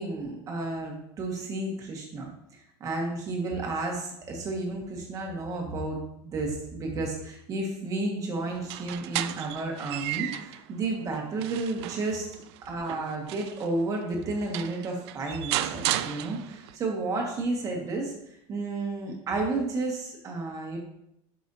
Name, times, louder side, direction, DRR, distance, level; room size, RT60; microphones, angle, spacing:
voice 1, 0.0-12.3 12.6-18.1 18.5-20.8, right 2 dB, 25° right, 0 dB, 1.5 m, -32 dB
sound 1, 8.5-10.6 11.1-13.7 14.2-14.3 14.5-16.8, right 14 dB, 70° right, 0.4 m, -34 dB
11.0 x 5.6 x 2.7 m, 0.78 s
supercardioid pair, 170°, 15 cm